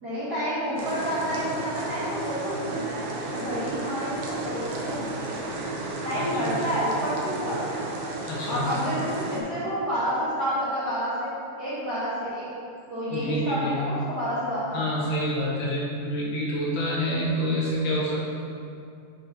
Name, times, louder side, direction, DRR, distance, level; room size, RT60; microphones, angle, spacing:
voice 1, 0.0-5.5 6.0-7.7 8.5-11.3 11.6-12.5 12.9-15.0, equal, 45° right, -12 dB, 1.3 m, -29 dB
sound 1, 0.8-9.4, right 2 dB, 75° right, 1.9 m, -33 dB
voice 2, 6.1-6.8 8.3-8.6 13.1-13.7 14.7-18.3, equal, 90° left, -6 dB, 1.2 m, -28 dB
9.1 x 5.3 x 2.9 m, 2.5 s
omnidirectional pair, 3.8 m